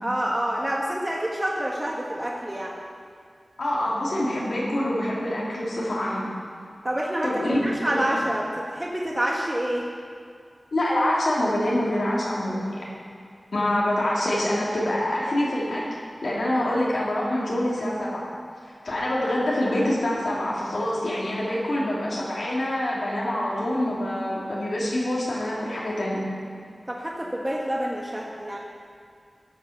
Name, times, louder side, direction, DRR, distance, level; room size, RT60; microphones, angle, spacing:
voice 1, 0.0-2.7 6.8-9.9 26.9-28.6, right 1 dB, 25° right, -2 dB, 1.3 m, -27 dB
voice 2, 3.6-6.3 7.2-7.6 7.9-8.0 10.7-12.7 13.5-15.8 16.2-18.2 18.6-26.3, left 1 dB, 90° left, -6 dB, 2.8 m, -25 dB
14.0 x 5.7 x 5.9 m, 2.2 s
wide cardioid pair, 55°, 0 cm